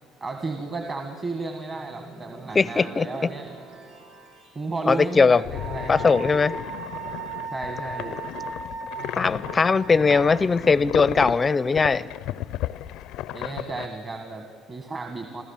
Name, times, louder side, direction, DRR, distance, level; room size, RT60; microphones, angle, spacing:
voice 1, 0.2-3.5 4.6-6.0 7.5-8.2 9.4-9.6 13.3-15.4, right 3 dB, 30° right, 4 dB, 1.7 m, -33 dB
sound 1, 1.7-4.7, right 4 dB, 70° right, 3.8 m, -46 dB
voice 2, 2.5-3.1 4.9-5.4 5.9-6.5 9.2-12.0, left 4 dB, 20° left, 18 dB, 0.5 m, -20 dB
sound 2, 5.4-13.9, left 14 dB, 75° left, 0.5 m, -34 dB
Wind instrument woodwind instrument, 5.5-10.4, right 4 dB, 45° right, 7.6 m, -37 dB
27.0 x 15.0 x 7.3 m, 2.2 s
cardioid pair, 135°, 0 cm